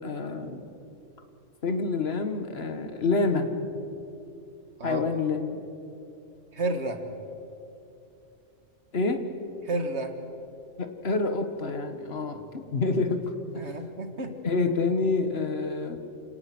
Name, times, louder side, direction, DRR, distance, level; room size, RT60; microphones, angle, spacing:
voice 1, 0.0-0.7 1.6-3.5 4.8-5.6 8.9-9.2 10.8-13.2 14.4-16.0, left 3 dB, 55° left, 7 dB, 1.8 m, -27 dB
voice 2, 6.5-7.0 9.6-10.1 13.5-14.4, right 2 dB, 60° right, 7 dB, 2.0 m, -31 dB
28.5 x 18.0 x 6.2 m, 2.8 s
omnidirectional pair, 1.3 m